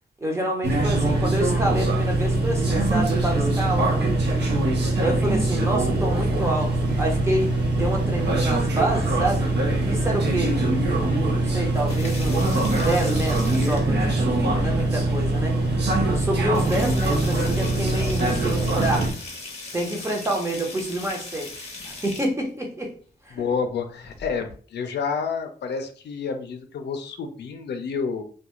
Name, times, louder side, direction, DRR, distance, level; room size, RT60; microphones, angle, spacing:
voice 1, 0.2-4.1 5.0-9.5 9.8-10.6 11.3-15.5 16.1-19.1 19.7-22.9 23.2-23.5, right 1 dB, 15° right, 0 dB, 0.6 m, -28 dB
sound 1, 0.6-19.1, right 2 dB, 85° right, 0.7 m, -22 dB
voice 2, 10.4-10.7 23.3-28.2, left 5 dB, 85° left, 6 dB, 0.4 m, -29 dB
sound 2, 11.8-14.1 15.5-15.6 16.0-16.1 16.4-22.3 24.0-24.5, left 3 dB, 40° left, 0.7 m, -38 dB
2.4 x 2.2 x 2.9 m, 0.43 s
wide cardioid pair, 155°, 17 cm